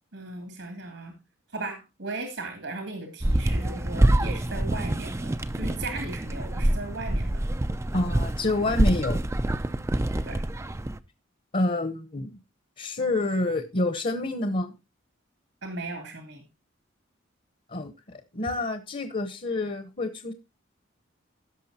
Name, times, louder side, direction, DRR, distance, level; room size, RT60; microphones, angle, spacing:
voice 1, 0.1-1.1 1.5-7.4 10.2-10.4 15.6-16.4, right 2 dB, 80° right, 4 dB, 2.9 m, -37 dB
sound 1, 3.2-11.0, right 1 dB, 15° right, 0.4 m, -26 dB
voice 2, 7.9-9.2 11.5-12.4 12.8-14.7 17.7-20.3, left 2 dB, 40° left, 9 dB, 1.0 m, -28 dB
17.0 x 6.4 x 2.8 m, 0.26 s
head